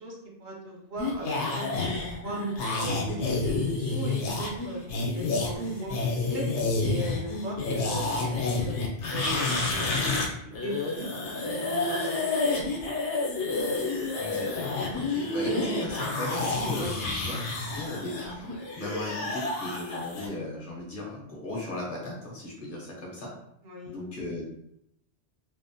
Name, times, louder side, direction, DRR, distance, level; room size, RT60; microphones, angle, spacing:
voice 1, 0.0-2.4 2.7-4.8 5.1-6.5 6.8-8.8 9.1-11.1 11.4-12.5 16.7-16.9 23.6-24.0, right 1 dB, 65° right, -2 dB, 0.8 m, -38 dB
sound 1, 1.0-10.3 10.5-20.3, left 3 dB, 80° left, 0.9 m, -29 dB
voice 2, 14.2-18.5 18.8-23.3 23.8-24.5, left 1 dB, 55° left, -3 dB, 0.6 m, -37 dB
2.7 x 2.0 x 2.5 m, 0.77 s
omnidirectional pair, 1.2 m